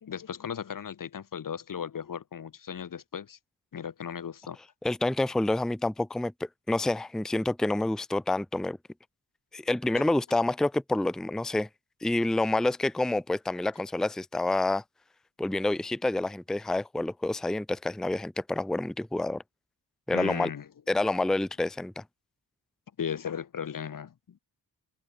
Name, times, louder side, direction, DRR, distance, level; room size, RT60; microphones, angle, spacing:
voice 1, 0.0-3.4 3.7-4.6 10.0-10.1 20.1-20.7 23.0-24.4, left 8 dB, 50° left, 0.8 m, -36 dB
voice 2, 4.8-6.3 6.7-8.8 9.5-11.7 12.0-14.8 15.4-19.4 20.1-20.5 20.9-22.0, left 2 dB, ahead, 0.6 m, -28 dB
wide cardioid pair, 115°, 41 cm